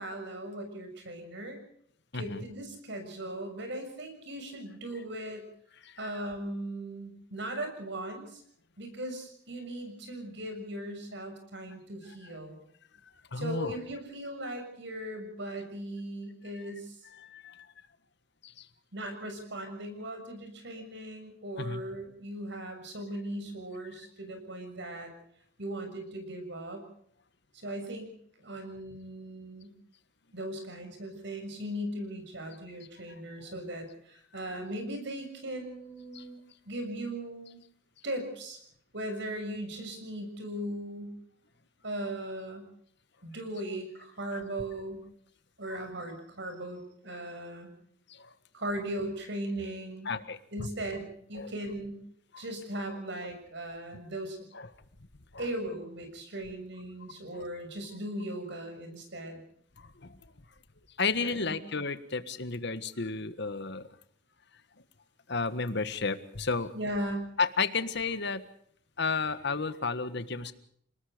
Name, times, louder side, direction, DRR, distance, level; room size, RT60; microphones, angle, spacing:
voice 1, 0.0-1.6 2.1-5.4 6.0-8.4 8.8-12.6 13.3-17.0 18.9-25.1 25.6-26.8 27.5-29.7 30.3-36.4 36.6-37.6 38.0-38.6 38.9-41.1 41.8-42.6 43.2-45.0 45.6-47.7 48.5-50.1 50.5-52.0 52.4-54.4 55.4-59.4 61.2-61.6 66.7-67.3, right 1 dB, 65° right, 6 dB, 6.8 m, -38 dB
voice 2, 13.3-13.7 17.1-17.7 18.4-18.7 21.6-21.8 36.1-36.2 48.1-48.3 50.0-50.7 51.3-51.5 52.3-52.4 54.5-54.7 55.3-55.4 59.8-60.2 61.0-63.9 65.3-66.7 67.4-68.4 69.0-70.5, left 4 dB, 60° left, 12 dB, 1.6 m, -32 dB
29.0 x 19.5 x 5.1 m, 0.65 s
head